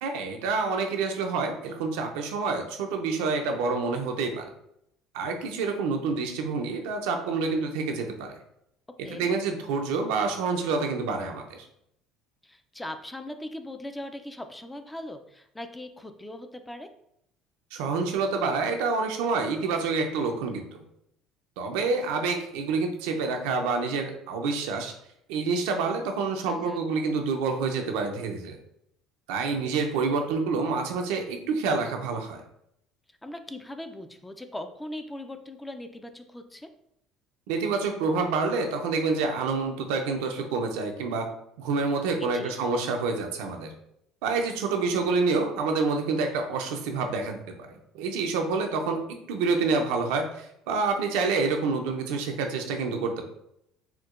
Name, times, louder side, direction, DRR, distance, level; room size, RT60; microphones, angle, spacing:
voice 1, 0.0-4.5 5.1-8.3 9.0-11.5 17.7-20.8 21.6-24.9 25.3-28.6 29.3-32.4 37.5-41.3 41.6-43.7 44.2-47.7 47.9-53.1, right 4 dB, 90° right, 4 dB, 0.5 m, -27 dB
voice 2, 12.4-16.9 26.5-26.9 33.2-36.7 42.2-42.5, left 1 dB, 10° left, 8 dB, 0.3 m, -40 dB
4.4 x 2.1 x 2.4 m, 0.76 s
cardioid pair, 115°, 0 cm